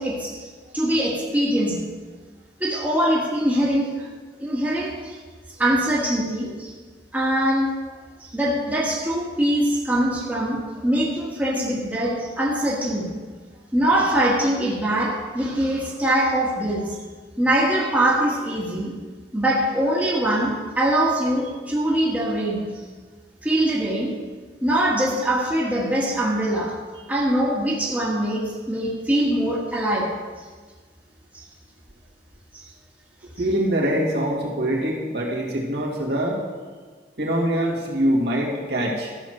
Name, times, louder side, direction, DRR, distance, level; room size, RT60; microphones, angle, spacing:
voice 1, 0.0-1.9 2.6-4.1 4.4-5.2 5.6-6.7 7.1-7.8 8.2-13.1 13.7-17.0 17.4-18.9 19.3-22.7 23.4-24.2 24.6-26.8 27.1-30.1 31.3-31.4 32.5-32.7, right 1 dB, 10° right, -4 dB, 1.6 m, -23 dB
voice 2, 33.4-36.4 37.2-39.1, right 1 dB, 65° right, -3 dB, 2.4 m, -24 dB
13.5 x 6.3 x 6.5 m, 1.4 s
head